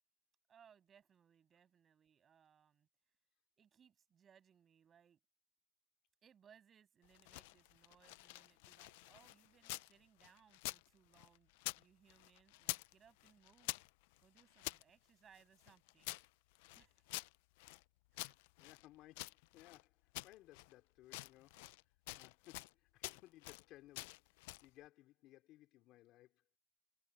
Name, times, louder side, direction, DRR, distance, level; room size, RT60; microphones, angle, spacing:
voice 1, 0.5-2.9 3.6-5.2 6.2-13.7 14.2-16.1 16.7-17.0 18.1-18.3, right 8 dB, 30° right, 7.7 m, -68 dB
sound 1, 7.0-9.9 10.2-11.8 12.1-12.9 13.2-14.8 15.3-17.8 18.1-19.8 20.1-20.7 21.0-21.8 22.1-22.7 23.0-23.6 23.9-24.7, left 22 dB, 80° left, 0.4 m, -48 dB
voice 2, 18.6-26.5, left 16 dB, 50° left, 3.6 m, -62 dB
supercardioid pair, 140°, 0 cm